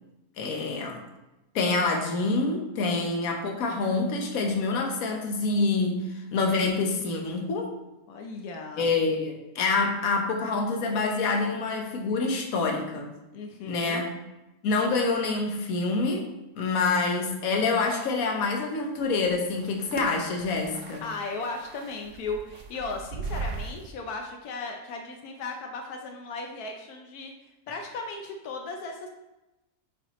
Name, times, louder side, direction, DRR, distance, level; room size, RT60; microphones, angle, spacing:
voice 1, 0.4-1.0 1.5-7.7 8.8-13.1 13.6-14.1 14.6-16.3 16.5-21.0, left 3 dB, 70° left, 2 dB, 1.3 m, -26 dB
voice 2, 8.1-8.9 13.3-14.0 21.0-27.3 27.7-29.1, left 3 dB, 85° left, 3 dB, 1.2 m, -36 dB
sound 1, 19.0-23.9, right 4 dB, 75° right, 1.2 m, -39 dB
9.0 x 4.3 x 3.0 m, 0.99 s
omnidirectional pair, 1.6 m